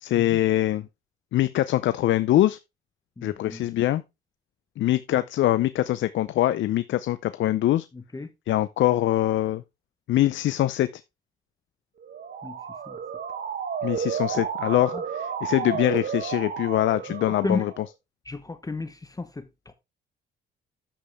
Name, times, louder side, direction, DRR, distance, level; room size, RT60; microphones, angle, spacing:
voice 1, 0.0-0.9 1.3-2.6 3.2-4.0 4.8-7.9 8.5-9.6 10.1-10.9 13.8-17.8, left 14 dB, 75° left, 0.6 m, -23 dB
voice 2, 3.2-3.7 7.9-8.3 12.4-12.6 12.9-13.0 14.9-15.0 17.4-17.6 18.3-19.7, left 3 dB, 20° left, 1.2 m, -33 dB
Motor vehicle (road) / Siren, 12.0-17.9, right 7 dB, 55° right, 1.6 m, -32 dB
10.0 x 7.6 x 3.5 m
cardioid pair, 90°, 20 cm